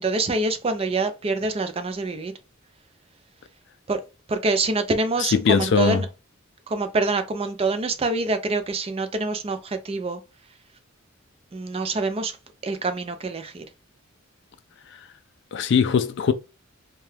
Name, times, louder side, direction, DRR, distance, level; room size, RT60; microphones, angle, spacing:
voice 1, 0.0-2.3 3.9-4.0 4.3-6.1 6.7-10.2 11.5-12.4 12.6-13.6, right 3 dB, 30° right, 0.4 m, -26 dB
voice 2, 5.2-6.0 15.5-16.3, left 6 dB, 55° left, 0.3 m, -20 dB
2.7 x 2.2 x 3.2 m
head